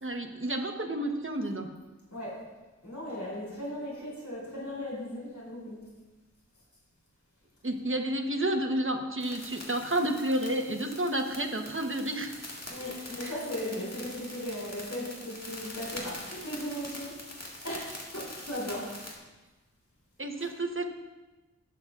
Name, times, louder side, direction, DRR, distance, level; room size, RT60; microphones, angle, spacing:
voice 1, 0.0-1.7 7.6-12.4 13.2-13.3 20.2-20.8, right 1 dB, 45° right, 4 dB, 1.1 m, -30 dB
voice 2, 2.1-2.4 2.8-5.8 12.7-17.2 17.6-18.9 20.4-20.5, equal, 85° left, -7 dB, 3.3 m, -37 dB
sound 1, 9.2-19.2, left 1 dB, 60° left, 2.0 m, -44 dB
18.0 x 6.8 x 2.5 m, 1.1 s
wide cardioid pair, 45°, 29 cm